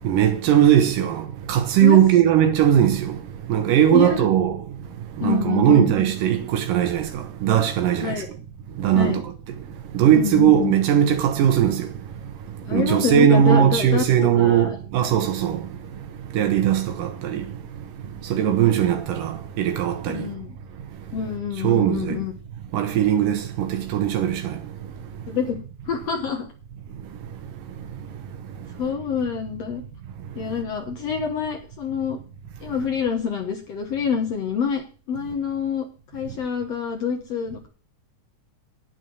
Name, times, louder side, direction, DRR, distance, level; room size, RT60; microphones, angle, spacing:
voice 1, 0.0-8.2 8.7-9.2 9.6-20.3 20.8-20.9 21.6-22.2 22.7-25.3 27.0-28.7 30.3-30.4, right 10 dB, 90° right, 2.9 m, -20 dB
voice 2, 3.9-4.3 5.2-5.9 8.0-8.3 8.9-9.2 10.1-10.7 12.6-14.8 20.1-20.6 21.1-22.3 25.3-25.6 25.9-26.5 28.8-29.8 30.4-32.2 32.6-35.8 36.1-37.7, left 7 dB, 60° left, 2.1 m, -27 dB
9.5 x 9.3 x 6.2 m
omnidirectional pair, 3.7 m